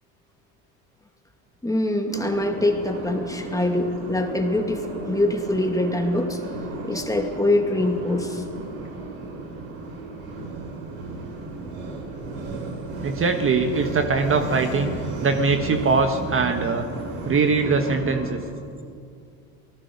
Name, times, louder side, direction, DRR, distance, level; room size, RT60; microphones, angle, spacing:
voice 1, 1.6-6.4 6.8-8.4, left 1 dB, 10° left, 3 dB, 2.3 m, -24 dB
sound 1, 2.1-18.3, right 3 dB, 85° right, 5.6 m, -34 dB
voice 2, 13.0-14.9 15.2-16.9 17.2-18.4, right 4 dB, 30° right, 6 dB, 1.4 m, -22 dB
28.5 x 18.5 x 5.4 m, 2.4 s
supercardioid pair, 105°, 40 cm